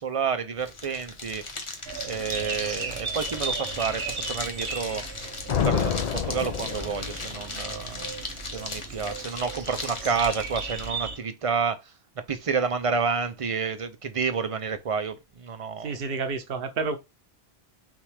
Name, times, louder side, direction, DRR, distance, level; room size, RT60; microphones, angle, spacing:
voice 1, 0.0-8.1 8.4-11.8 12.3-16.0, right 5 dB, 40° right, 0.5 m, -30 dB
sound 1, 0.6-10.9, left 3 dB, 30° left, 1.0 m, -38 dB
sound 2, 1.8-11.2, right 4 dB, 85° right, 1.2 m, -36 dB
sound 3, 5.5-7.5, left 8 dB, 55° left, 0.5 m, -28 dB
voice 2, 15.8-17.0, right 4 dB, 65° right, 1.0 m, -29 dB
5.9 x 2.4 x 3.3 m
omnidirectional pair, 1.0 m